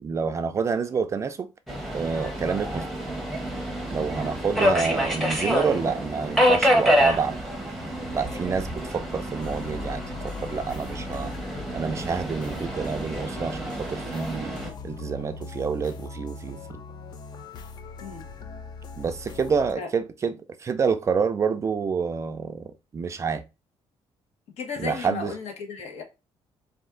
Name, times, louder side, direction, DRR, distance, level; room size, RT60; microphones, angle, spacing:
voice 1, 0.0-1.5 1.9-2.9 3.9-7.4 8.1-11.3 11.7-14.5 14.8-16.8 19.0-20.3 20.6-23.4 24.8-25.3, right 5 dB, 30° right, 0.4 m, -28 dB
Subway metro underground, 1.7-14.7, equal, ahead, 0.8 m, -27 dB
sound 1, 9.4-19.7, left 4 dB, 40° left, 0.5 m, -40 dB
voice 2, 24.6-26.0, left 6 dB, 75° left, 1.4 m, -35 dB
4.2 x 2.7 x 3.7 m
cardioid pair, 170°, 11 cm